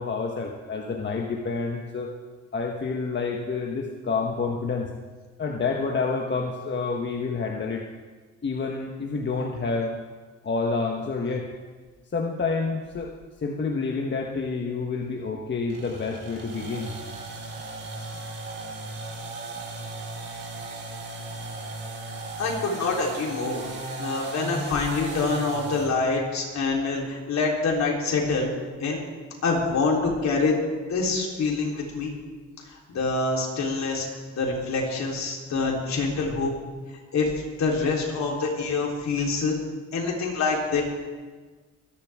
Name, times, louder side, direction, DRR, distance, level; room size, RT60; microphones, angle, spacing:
voice 1, 0.0-2.1 2.5-4.9 5.4-7.8 8.4-10.0 10.4-11.5 12.1-13.1 13.4-17.0, left 4 dB, 35° left, 1 dB, 1.3 m, -28 dB
sound 1, 15.7-26.0, right 2 dB, 50° right, 4.4 m, -36 dB
voice 2, 22.4-23.7 24.0-28.5 28.8-29.1 29.4-30.6 30.9-32.1 32.7-36.5 37.1-37.3 37.6-39.6 39.9-40.8, left 4 dB, 65° left, -2 dB, 3.8 m, -26 dB
24.5 x 10.5 x 3.6 m, 1.4 s
cardioid pair, 90°, 30 cm